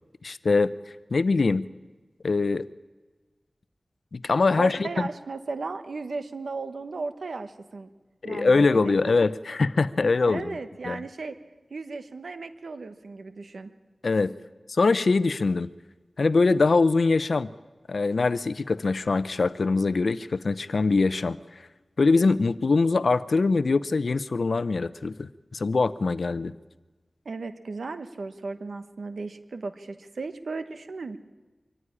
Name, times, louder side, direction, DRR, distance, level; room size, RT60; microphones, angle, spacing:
voice 1, 0.2-0.7 1.1-1.7 2.2-2.7 4.1-4.9 8.2-10.5 10.9-11.0 14.0-14.4 14.7-15.7 16.2-17.5 17.9-21.4 22.0-26.5, left 3 dB, 70° left, 16 dB, 0.7 m, -23 dB
voice 2, 4.5-7.9 8.2-9.1 10.3-11.4 11.7-13.7 27.2-31.2, right 3 dB, 85° right, 10 dB, 1.2 m, -36 dB
23.5 x 14.5 x 9.9 m, 1.3 s
wide cardioid pair, 85°, 0 cm